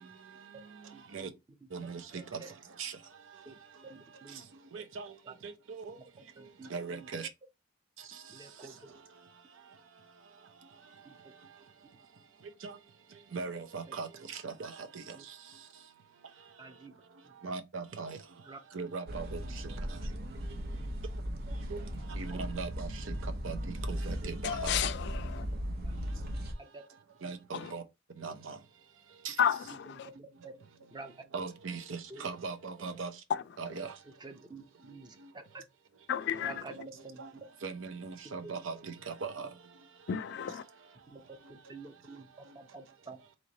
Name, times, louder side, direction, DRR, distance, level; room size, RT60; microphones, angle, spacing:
voice 1, 0.9-1.3 2.1-2.2 3.5-3.6 3.9-4.4 5.3-5.4 6.4-7.1 8.3-8.9 11.0-11.2 15.1-15.2 16.6-16.9 17.2-17.3 18.5-18.6 22.3-22.4 25.8-25.9 26.6-26.8 27.2-27.3 29.7-30.6 30.9-31.1 31.9-32.2 34.2-35.6 36.3-37.2 41.1-41.2 41.5-42.3 42.5-43.2, right 3 dB, 20° right, 0.7 m, -49 dB
voice 2, 1.7-2.2 2.8-2.9 4.7-5.1 5.4-5.9 6.7-7.3 12.6-12.7 13.3-14.1 14.4-14.7 17.4-18.2 18.7-19.4 21.7-21.8 22.2-23.2 23.4-24.7 27.2-27.8 28.2-28.6 29.2-29.3 31.3-33.1 33.6-33.9 36.8-36.9 37.2-37.3 37.6-39.5, right 4 dB, 80° right, 0.7 m, -39 dB
sound 1, 19.1-26.5, equal, 50° right, 0.8 m, -37 dB
voice 3, 24.4-25.4 29.4-30.1 36.1-36.5 40.1-40.6, left 8 dB, 60° left, 0.4 m, -31 dB
3.2 x 3.1 x 3.8 m
head